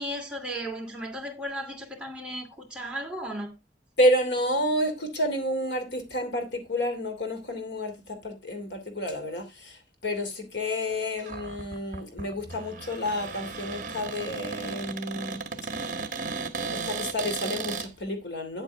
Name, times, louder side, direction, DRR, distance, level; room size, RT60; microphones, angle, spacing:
voice 1, 0.0-3.5, equal, 5° right, 2.7 m, -35 dB
voice 2, 4.0-9.8 10.0-15.4 16.7-18.6, equal, 90° left, 3.0 m, -29 dB
Cupboard open or close, 11.2-17.9, right 4 dB, 45° right, 1.4 m, -35 dB
10.0 x 8.3 x 3.5 m
head